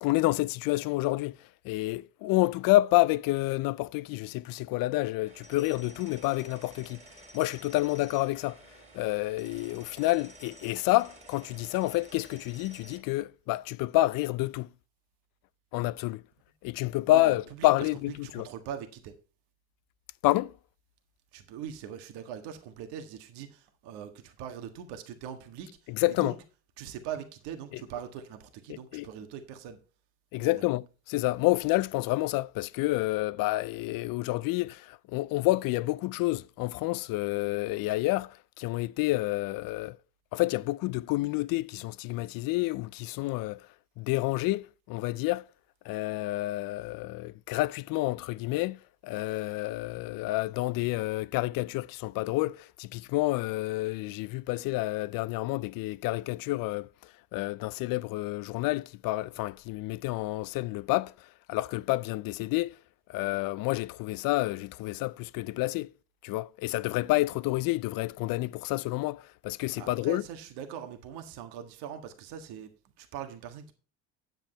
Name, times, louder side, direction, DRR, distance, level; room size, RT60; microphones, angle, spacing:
voice 1, 0.0-7.0 7.3-8.6 8.9-14.7 15.7-16.2 16.6-18.5 20.2-20.5 25.9-26.4 27.7-27.8 28.7-29.1 30.3-40.0 40.3-43.7 44.0-45.5 45.8-62.8 63.1-65.9 66.2-70.2, left 18 dB, 55° left, 0.5 m, -29 dB
sound 1, 5.2-13.0, right 2 dB, 15° right, 2.6 m, -52 dB
voice 2, 17.1-17.7 18.2-19.1 21.3-25.8 26.2-26.4 26.8-29.8 30.4-30.6 69.8-72.7 73.0-73.7, right 9 dB, 70° right, 1.7 m, -41 dB
9.0 x 8.0 x 4.4 m
supercardioid pair, 95°, 41 cm